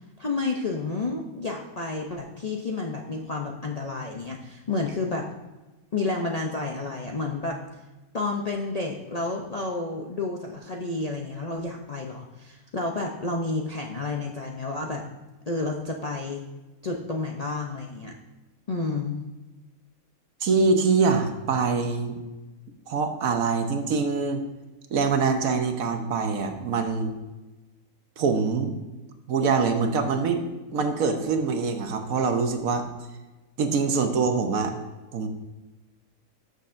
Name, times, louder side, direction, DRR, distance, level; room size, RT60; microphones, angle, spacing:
voice 1, 0.2-5.3 5.9-7.6 8.1-15.0 15.5-16.4 16.8-18.1 18.7-19.2, left 3 dB, 45° left, 0 dB, 0.5 m, -30 dB
voice 2, 20.4-22.2 22.9-24.4 24.9-27.1 28.2-28.8 29.3-30.4 30.7-32.9 33.6-34.7 35.1-35.3, right 4 dB, 70° right, 6 dB, 1.3 m, -24 dB
14.0 x 6.5 x 2.6 m, 1.1 s
omnidirectional pair, 1.5 m